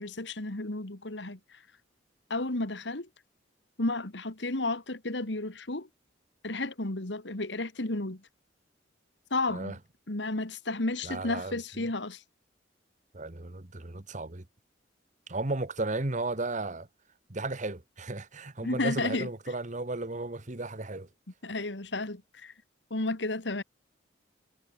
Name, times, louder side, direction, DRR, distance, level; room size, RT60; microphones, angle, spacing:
voice 1, 0.0-1.6 2.3-3.1 3.8-5.9 6.4-8.3 9.3-9.8 10.1-12.2 18.6-19.3 21.4-22.5 22.9-23.6, left 2 dB, 75° left, 2.3 m, -32 dB
voice 2, 11.0-11.5 13.1-14.4 15.3-16.9 17.3-21.1, right 2 dB, 45° right, 1.5 m, -34 dB
head